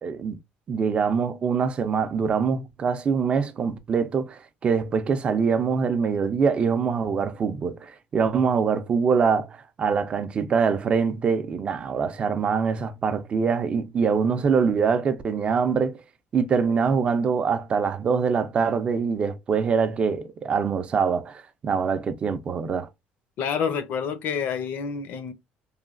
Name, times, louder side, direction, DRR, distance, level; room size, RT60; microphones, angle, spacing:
voice 1, 0.0-0.4 0.7-16.0 16.3-22.9, right 6 dB, 30° right, 0.4 m, -24 dB
voice 2, 23.4-25.3, left 7 dB, 60° left, 0.6 m, -28 dB
3.1 x 2.2 x 2.4 m
cardioid pair, 150°, 4 cm